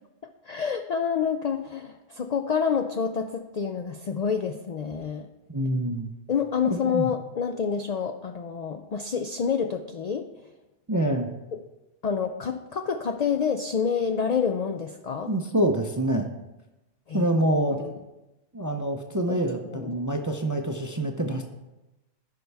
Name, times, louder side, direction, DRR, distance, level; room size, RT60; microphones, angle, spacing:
voice 1, 0.4-5.3 6.3-10.3 12.0-15.3 17.1-17.3 17.7-17.9 19.3-19.4 19.6-19.9, left 6 dB, 75° left, 6 dB, 0.3 m, -28 dB
voice 2, 5.5-6.1 6.7-7.1 10.9-11.3 15.3-16.3 17.1-17.8 18.5-21.4, right 1 dB, 30° right, 4 dB, 0.4 m, -26 dB
14.0 x 5.4 x 3.4 m, 1.0 s
omnidirectional pair, 1.3 m